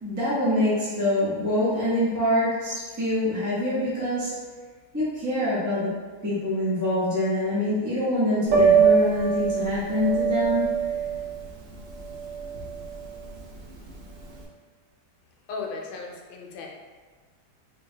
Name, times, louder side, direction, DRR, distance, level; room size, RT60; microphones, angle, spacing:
voice 1, 0.0-4.3 4.9-5.9 6.2-10.7, left 1 dB, 20° right, -10 dB, 0.4 m, -25 dB
Piano, 8.5-14.4, right 6 dB, 70° right, 0.7 m, -23 dB
voice 2, 15.5-16.7, left 4 dB, 75° left, 0 dB, 1.3 m, -36 dB
3.8 x 3.2 x 2.8 m, 1.4 s
omnidirectional pair, 2.2 m